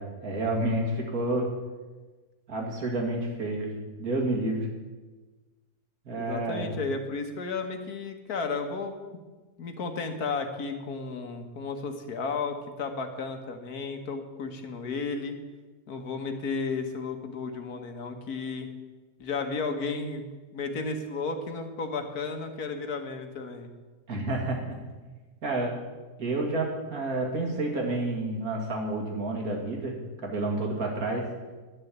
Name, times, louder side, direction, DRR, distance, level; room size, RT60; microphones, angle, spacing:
voice 1, 0.0-1.5 2.5-4.7 6.0-6.8 24.1-24.8 25.4-25.7 26.2-31.2, right 2 dB, 60° right, 0 dB, 2.7 m, -30 dB
voice 2, 6.1-8.9 9.6-15.4 15.9-18.7 19.2-23.7, left 4 dB, 65° left, 6 dB, 1.7 m, -33 dB
11.5 x 6.8 x 8.6 m, 1.3 s
omnidirectional pair, 1.7 m